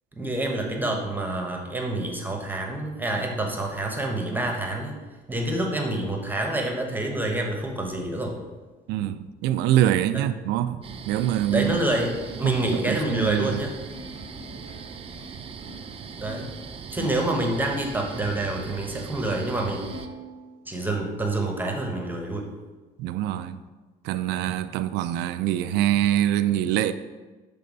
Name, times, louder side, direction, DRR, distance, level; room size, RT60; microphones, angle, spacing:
voice 1, 0.2-5.0 5.3-8.4 10.1-10.3 11.5-13.7 16.2-16.5 16.9-19.8 20.7-22.5 24.3-24.5, right 1 dB, 10° right, 1.0 m, -27 dB
voice 2, 8.9-11.8 12.4-13.6 17.0-17.1 23.0-23.6 24.0-26.9, right 12 dB, 85° right, 0.4 m, -25 dB
sound 1, 10.8-20.1, right 5 dB, 35° right, 0.5 m, -40 dB
Plucked string instrument, 11.7-16.6 16.9-18.7 19.1-19.2 19.9-21.0, equal, 80° left, 2.1 m, -46 dB
6.6 x 3.4 x 5.3 m
cardioid pair, 110°, 17 cm